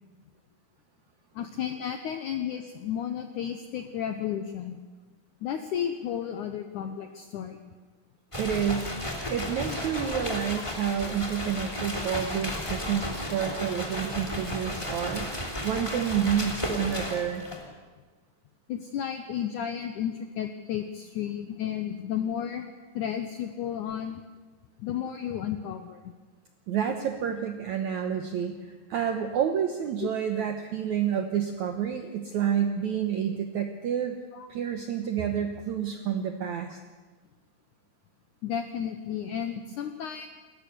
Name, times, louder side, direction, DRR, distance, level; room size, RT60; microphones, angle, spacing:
voice 1, 1.3-4.8 5.4-7.6 18.7-24.2 24.8-26.1 30.0-30.1 34.3-34.5 38.4-40.3, left 9 dB, 80° left, 7 dB, 1.8 m, -33 dB
sound 1, 8.3-17.7, left 1 dB, 10° left, 2.3 m, -34 dB
voice 2, 8.4-8.9 9.3-17.4 19.3-19.4 26.7-34.2 34.5-36.8, right 8 dB, 80° right, 6 dB, 1.7 m, -29 dB
28.5 x 14.0 x 6.9 m, 1.3 s
omnidirectional pair, 4.7 m